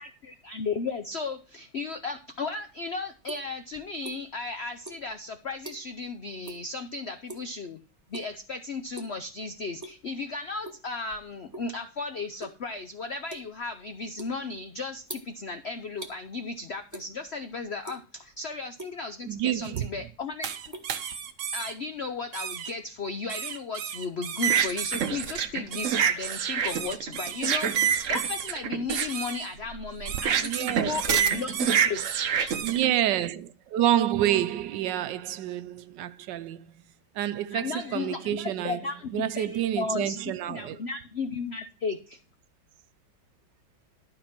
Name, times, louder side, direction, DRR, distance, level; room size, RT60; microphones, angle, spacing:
voice 1, 0.0-7.8 8.1-20.5 21.5-32.0 37.5-42.2, left 4 dB, 75° left, 0.5 m, -35 dB
sound 1, 2.6-4.5 4.8-6.1 6.4-6.7 7.0-7.6 8.1-8.5 8.8-9.2 9.6-10.2 10.6-11.7 12.1-16.2 16.9-17.4 17.7-18.3 18.8-18.9 19.5-20.2 20.4-21.6, right 1 dB, 10° right, 0.9 m, -44 dB
voice 2, 19.2-19.9 30.4-31.1 32.6-36.8 37.1-38.8 39.1-40.8, right 12 dB, 75° right, 1.2 m, -28 dB
sound 2, 20.4-21.7 22.3-22.7 23.3-32.9, right 8 dB, 60° right, 0.8 m, -28 dB
12.0 x 5.1 x 5.9 m
omnidirectional pair, 2.1 m